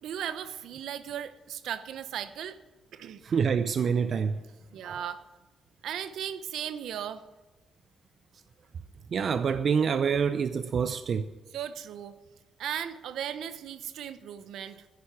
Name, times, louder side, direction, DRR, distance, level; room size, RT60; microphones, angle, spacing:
voice 1, 0.0-2.6 2.9-3.2 4.7-5.2 5.8-7.2 11.5-12.1 12.6-14.9, right 9 dB, 75° right, 0.9 m, -36 dB
voice 2, 3.2-4.4 4.8-5.0 9.1-11.3, right 6 dB, 50° right, 0.6 m, -26 dB
10.5 x 10.0 x 8.2 m
cardioid pair, 90°, 0 cm